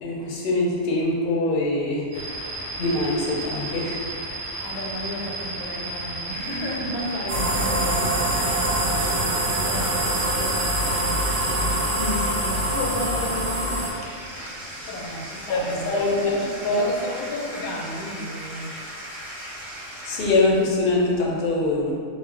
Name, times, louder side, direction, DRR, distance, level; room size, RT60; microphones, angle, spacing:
voice 1, 0.0-2.0 2.5-4.0 12.0-12.4 15.5-16.4 16.6-16.8 20.0-22.0, left 2 dB, 60° left, -4 dB, 0.5 m, -23 dB
sound 1, 2.1-18.8, right 1 dB, 40° right, 0.9 m, -35 dB
voice 2, 4.6-11.9 12.4-14.2 14.8-18.8, left 1 dB, 85° left, -2 dB, 1.0 m, -34 dB
sound 2, 7.3-13.9, right 1 dB, 70° right, 0.8 m, -24 dB
Bathtub (filling or washing), 10.7-20.8, right 1 dB, ahead, 0.6 m, -39 dB
2.4 x 2.0 x 3.6 m, 2.2 s
omnidirectional pair, 1.4 m